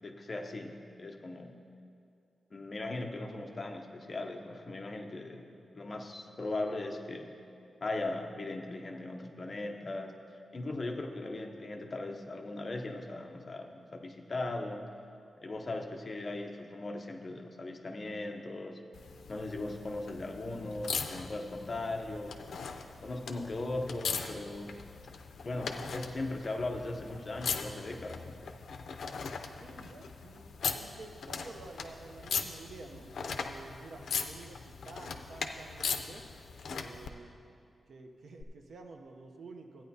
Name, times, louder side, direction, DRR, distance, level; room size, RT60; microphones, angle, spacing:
voice 1, 0.0-1.6 2.5-7.3 7.8-14.8 15.4-18.8 19.3-22.4 23.0-24.8 25.4-28.4, left 2 dB, 30° left, 3 dB, 0.6 m, -38 dB
sound 1, 18.9-37.1 38.4-38.5, left 5 dB, 75° left, 0.5 m, -40 dB
voice 2, 29.6-36.3 36.8-37.4 37.9-39.8, right 3 dB, 65° right, 4 dB, 0.7 m, -50 dB
14.0 x 9.2 x 2.7 m, 2.5 s
wide cardioid pair, 165°, 0 cm